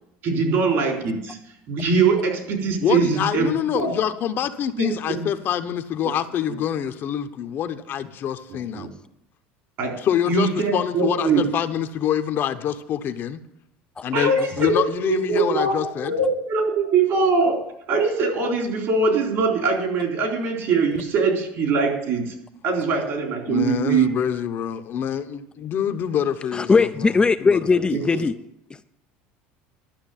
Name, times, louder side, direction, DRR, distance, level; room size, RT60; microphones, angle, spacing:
voice 1, 0.2-1.4 1.7-3.9 4.8-5.2 8.7-8.9 9.8-10.0 10.3-11.4 14.1-17.6 17.9-22.3 22.6-24.1 27.7-28.3, right 4 dB, 60° right, 3.7 m, -22 dB
voice 2, 2.8-8.9 10.0-13.4 14.0-16.2 23.4-28.1, left 9 dB, 45° left, 0.9 m, -26 dB
voice 3, 26.5-28.3, left 4 dB, 20° left, 0.4 m, -19 dB
12.0 x 6.3 x 9.1 m
supercardioid pair, 110°, 5 cm